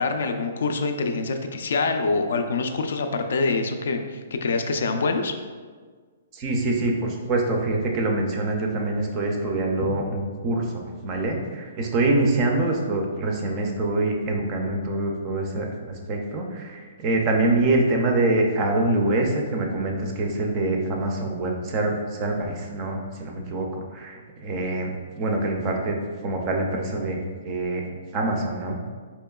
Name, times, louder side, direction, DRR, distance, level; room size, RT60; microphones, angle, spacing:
voice 1, 0.0-5.3, left 3 dB, 65° left, 6 dB, 0.3 m, -25 dB
voice 2, 6.3-26.0 26.2-27.8 28.1-28.8, right 2 dB, 20° right, 2 dB, 0.3 m, -25 dB
4.4 x 2.9 x 2.3 m, 1.6 s
hypercardioid pair, 175°, 0 cm